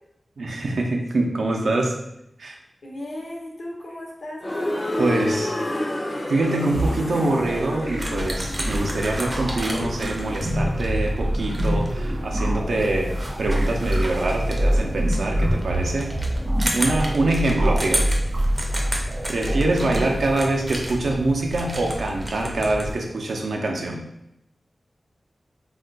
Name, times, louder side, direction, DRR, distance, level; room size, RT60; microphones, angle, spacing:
voice 1, 0.4-2.0 2.4-2.6 5.0-5.5 6.3-16.1 16.7-18.2 19.3-24.0, right 2 dB, 90° right, 0 dB, 0.5 m, -24 dB
voice 2, 2.8-5.2, left 1 dB, 70° left, -2 dB, 0.7 m, -36 dB
sound 1, 4.4-10.3, left 1 dB, 35° left, 0.4 m, -30 dB
sound 2, 6.7-20.3, right 1 dB, 60° right, 0.8 m, -26 dB
sound 3, 8.0-22.9, equal, 30° right, 0.5 m, -31 dB
2.4 x 2.2 x 3.8 m, 0.82 s
wide cardioid pair, 80°, 0 cm